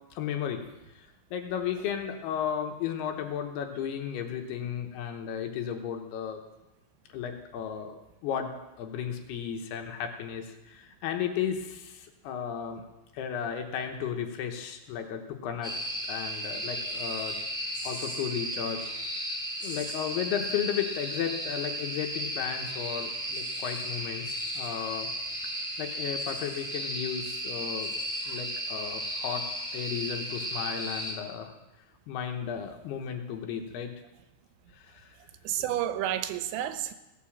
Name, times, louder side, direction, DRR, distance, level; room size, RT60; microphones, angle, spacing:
voice 1, 0.1-0.6 0.9-6.4 7.1-8.5 8.8-12.8 13.1-15.7 16.1-17.4 17.8-18.9 19.6-25.1 25.8-27.9 28.3-29.4 29.7-31.5 32.1-33.9 34.7-35.2 35.6-35.7, left 8 dB, 75° left, 4 dB, 2.9 m, -34 dB
sound 1, 15.6-31.1, equal, 5° left, 0.6 m, -35 dB
voice 2, 35.4-36.9, right 12 dB, 90° right, 10 dB, 3.1 m, -31 dB
16.5 x 6.9 x 7.3 m, 0.98 s
omnidirectional pair, 5.0 m